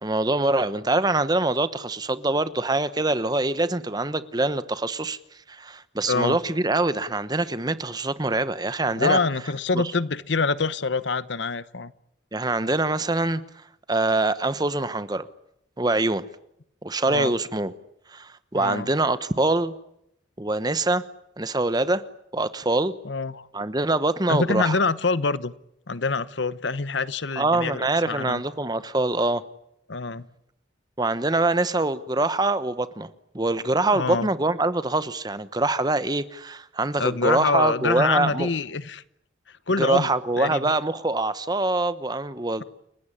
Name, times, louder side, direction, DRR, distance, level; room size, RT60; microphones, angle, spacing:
voice 1, 0.0-5.2 5.5-9.2 9.7-9.8 12.3-13.4 13.9-15.3 15.8-16.2 16.8-17.7 18.1-19.7 20.4-21.0 21.4-22.0 22.3-22.9 23.5-24.8 27.4-29.4 31.0-33.1 33.3-38.5 39.8-42.6, right 2 dB, 20° right, 13 dB, 1.0 m, -24 dB
voice 2, 6.1-6.4 9.0-11.9 17.1-17.3 18.5-18.9 23.0-23.5 24.3-25.5 25.9-28.4 29.9-30.3 33.9-34.3 37.0-39.0 39.7-40.1 40.4-40.6, left 4 dB, 70° left, 16 dB, 0.9 m, -25 dB
30.0 x 16.5 x 10.0 m, 0.78 s
head